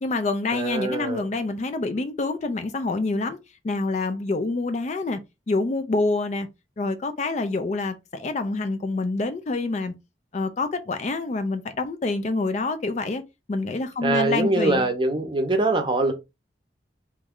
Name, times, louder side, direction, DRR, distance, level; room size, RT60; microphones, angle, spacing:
voice 1, 0.0-3.4 3.6-5.2 5.5-6.5 6.8-9.9 10.3-13.2 13.5-14.8, left 3 dB, 40° left, 0.4 m, -26 dB
voice 2, 0.5-1.3 14.0-16.1, right 2 dB, 25° right, 0.7 m, -23 dB
3.1 x 2.3 x 3.6 m
head